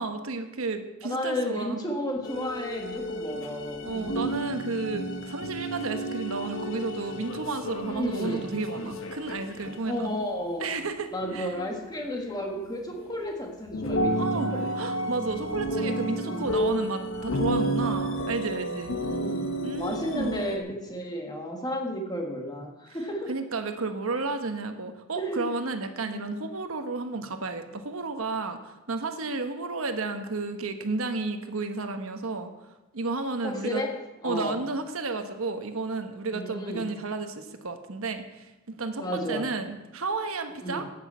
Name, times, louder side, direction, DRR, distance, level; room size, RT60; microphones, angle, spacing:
voice 1, 0.0-1.8 3.8-10.1 10.6-11.5 14.2-19.0 19.6-20.3 23.3-32.5 32.9-33.8 34.2-40.8, right 3 dB, 75° right, 7 dB, 1.1 m, -32 dB
voice 2, 1.0-4.2 7.9-8.5 9.8-10.8 11.1-14.7 16.2-16.6 18.9-23.3 25.2-25.6 26.1-26.5 33.4-34.0 34.2-34.6 36.3-36.9 39.0-39.5 40.6-40.8, equal, 20° left, 1 dB, 1.7 m, -33 dB
sound 1, 2.2-9.8 11.2-11.8 12.1-12.2 12.9-13.2 13.7-20.6, right 1 dB, 70° left, 1.1 m, -31 dB
9.2 x 8.1 x 8.3 m, 1.0 s
head